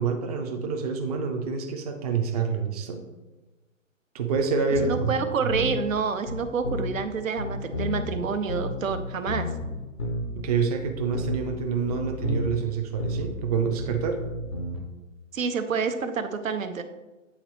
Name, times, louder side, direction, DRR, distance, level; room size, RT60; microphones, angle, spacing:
voice 1, 0.0-3.0 4.1-5.5 10.3-14.2, right 5 dB, 30° right, 4 dB, 0.5 m, -27 dB
sound 1, 4.3-4.4 4.8-6.0 6.3-7.0 7.4-10.5 10.8-11.6 11.9-12.7 13.0-14.8, left 1 dB, 20° left, 0.4 m, -31 dB
voice 2, 4.8-9.5 15.3-16.8, right 5 dB, 80° right, 8 dB, 0.8 m, -28 dB
8.7 x 4.0 x 3.1 m, 1.1 s
hypercardioid pair, 150°, 40 cm